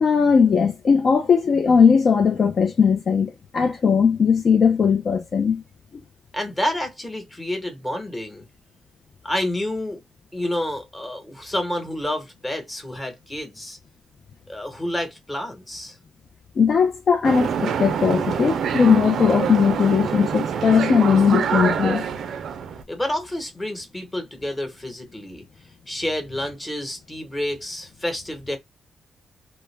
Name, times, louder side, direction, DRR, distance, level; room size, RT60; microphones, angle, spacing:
voice 1, 0.0-5.6 16.6-22.0, left 6 dB, 60° left, 0.5 m, -18 dB
voice 2, 6.3-8.4 9.2-10.0 10.3-13.8 14.5-16.0 22.9-25.4 25.9-28.6, left 1 dB, 20° left, 1.1 m, -29 dB
sound 1, 17.2-22.8, right 7 dB, 75° right, 0.4 m, -25 dB
2.1 x 2.1 x 3.2 m
supercardioid pair, 60°, 0 cm